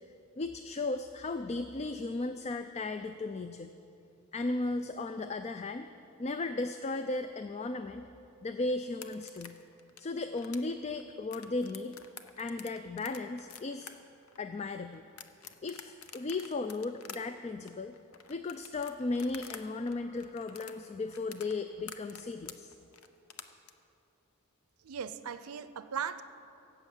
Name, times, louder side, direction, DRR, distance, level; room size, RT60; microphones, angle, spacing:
voice 1, 0.4-3.7 4.3-5.9 6.2-8.1 8.4-9.6 10.0-12.0 12.4-13.9 14.4-15.0 15.6-17.9 18.3-22.7, left 3 dB, 30° left, 9 dB, 0.3 m, -35 dB
sound 1, 8.9-19.6 19.9-23.7, left 7 dB, 70° left, 0.8 m, -49 dB
voice 2, 24.8-26.2, right 7 dB, 80° right, 12 dB, 0.5 m, -38 dB
17.0 x 8.2 x 7.2 m, 2.8 s
head